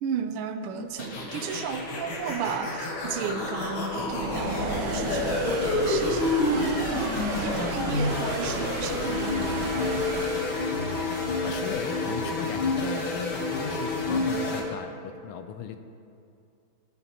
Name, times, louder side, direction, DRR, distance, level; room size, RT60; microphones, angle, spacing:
voice 1, 0.0-10.0, right 6 dB, 85° right, 7 dB, 1.6 m, -34 dB
sound 1, 1.0-14.6, left 2 dB, 70° left, 2.1 m, -28 dB
sound 2, 1.6-14.6, right 3 dB, 60° right, 0.8 m, -37 dB
Wind instrument woodwind instrument, 7.8-12.3, left 2 dB, 20° left, 1.1 m, -46 dB
voice 2, 11.4-15.8, left 8 dB, 90° left, 7 dB, 1.5 m, -37 dB
19.0 x 6.6 x 2.9 m, 2.5 s
omnidirectional pair, 2.4 m